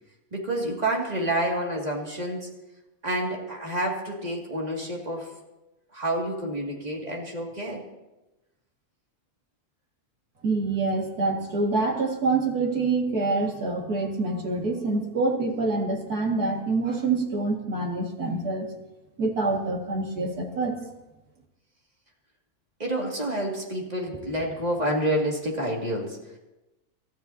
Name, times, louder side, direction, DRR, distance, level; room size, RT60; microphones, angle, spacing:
voice 1, 0.3-2.5 3.0-5.3 5.9-7.8 22.8-26.4, right 1 dB, 25° right, -1 dB, 2.3 m, -28 dB
voice 2, 10.4-18.7 19.2-20.8, right 3 dB, 80° right, 0 dB, 2.6 m, -26 dB
27.0 x 13.0 x 2.8 m, 1.0 s
omnidirectional pair, 1.6 m